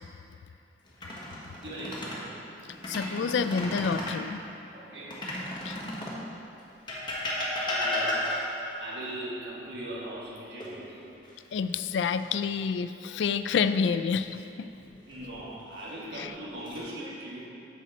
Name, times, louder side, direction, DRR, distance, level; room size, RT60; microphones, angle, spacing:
sound 1, 0.9-2.2 2.7-4.2 5.1-6.2 6.9-8.7 10.6-11.3 11.7-11.9 14.8-15.4 16.1-16.8, left 1 dB, 25° left, 1.3 m, -33 dB
voice 1, 1.6-2.4 4.7-5.3 7.6-8.5 8.8-11.1 15.1-17.5, right 1 dB, 70° right, -5 dB, 1.9 m, -39 dB
voice 2, 2.9-4.4 5.6-5.8 11.5-14.7 16.1-16.3, left 6 dB, 75° left, 11 dB, 0.3 m, -28 dB
8.4 x 6.7 x 4.2 m, 2.7 s
head